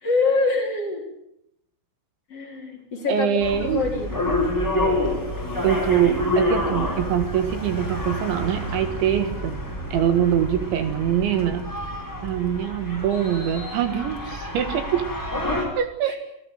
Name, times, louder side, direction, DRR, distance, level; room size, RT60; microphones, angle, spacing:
voice 1, 0.0-1.0 2.3-4.3 16.1-16.2, left 3 dB, 30° left, 0 dB, 4.5 m, -25 dB
voice 2, 3.1-3.9 5.6-9.6 9.9-11.7 12.2-15.1 15.8-16.2, right 9 dB, 70° right, 9 dB, 3.7 m, -23 dB
sound 1, 3.4-15.6, left 1 dB, 5° left, 5.1 m, -28 dB
29.0 x 17.0 x 9.2 m, 0.78 s
omnidirectional pair, 5.8 m